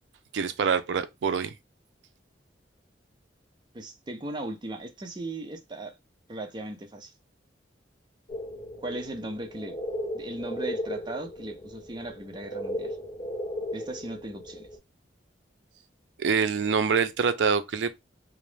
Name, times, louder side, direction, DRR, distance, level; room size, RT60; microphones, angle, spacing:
voice 1, 0.3-1.5 16.2-17.9, right 6 dB, 80° right, 0.4 m, -25 dB
voice 2, 3.7-6.0 6.3-7.1 8.8-9.8 10.1-13.0 13.7-14.7, right 1 dB, 25° right, 0.5 m, -37 dB
sound 1, 8.3-14.8, left 1 dB, 35° left, 0.5 m, -36 dB
2.4 x 2.0 x 3.1 m
head